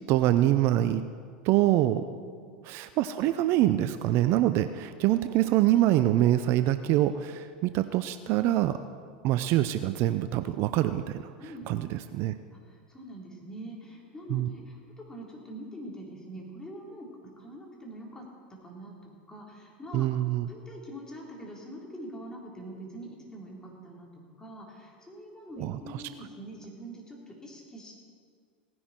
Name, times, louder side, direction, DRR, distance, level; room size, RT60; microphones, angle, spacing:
voice 1, 0.1-1.0 1.4-2.1 2.6-8.8 9.2-11.2 11.7-12.4 14.3-14.5 19.9-20.5 25.6-25.8, right 14 dB, 50° right, 11 dB, 0.5 m, -25 dB
voice 2, 11.4-11.9 12.5-17.1 17.4-18.2 18.5-20.1 20.5-28.0, right 1 dB, 10° left, -2 dB, 3.8 m, -44 dB
17.5 x 10.5 x 4.5 m, 2.1 s
hypercardioid pair, 90°, 5 cm